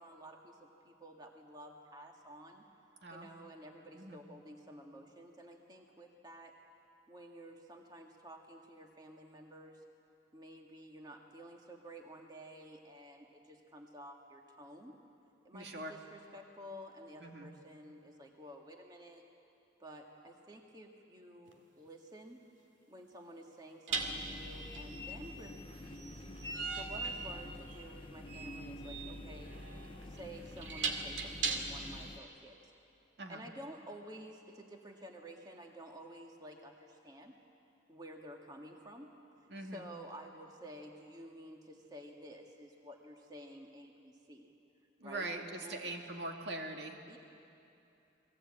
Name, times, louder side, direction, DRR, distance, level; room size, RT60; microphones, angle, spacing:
voice 1, 0.0-2.6 3.1-6.5 7.1-9.8 10.3-15.0 15.4-19.2 19.8-22.4 22.9-26.3 26.7-29.5 30.0-32.7 33.3-37.3 37.9-39.1 39.6-44.5 45.0-45.3 45.6-45.9 47.1-47.2, equal, 20° right, 1 dB, 1.7 m, -52 dB
voice 2, 3.0-3.3 3.9-4.2 15.5-16.0 17.2-17.5 33.2-33.4 39.5-39.9 45.0-47.0, right 2 dB, 65° right, 2 dB, 2.2 m, -42 dB
sound 1, 21.5-21.6 23.9-31.9, right 4 dB, 90° right, 2.3 m, -40 dB
sound 2, 23.9-32.2, left 1 dB, 30° left, 0.7 m, -48 dB
29.0 x 21.0 x 8.8 m, 2.7 s
head